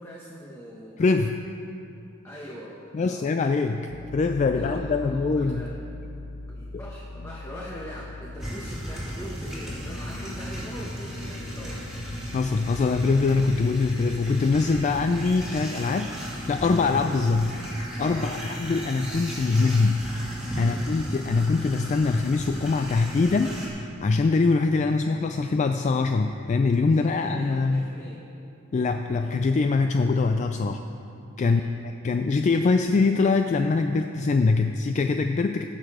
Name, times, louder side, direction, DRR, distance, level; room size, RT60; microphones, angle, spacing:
voice 1, 0.0-1.1 2.2-3.5 4.0-4.2 4.5-5.7 6.5-11.9 18.1-18.4 20.6-20.9 26.9-28.3 31.4-31.7, equal, 15° left, -4 dB, 1.0 m, -42 dB
voice 2, 1.0-1.4 2.9-5.6 12.3-16.1 16.5-17.5 18.0-20.1 20.6-27.9 28.7-30.8 31.4-35.6, left 4 dB, 35° left, 7 dB, 0.3 m, -23 dB
sound 1, 3.9-21.3, left 2 dB, 85° left, 0.6 m, -43 dB
sound 2, 8.4-23.7, equal, 5° right, 2.3 m, -35 dB
16.5 x 6.7 x 4.9 m, 2.7 s
head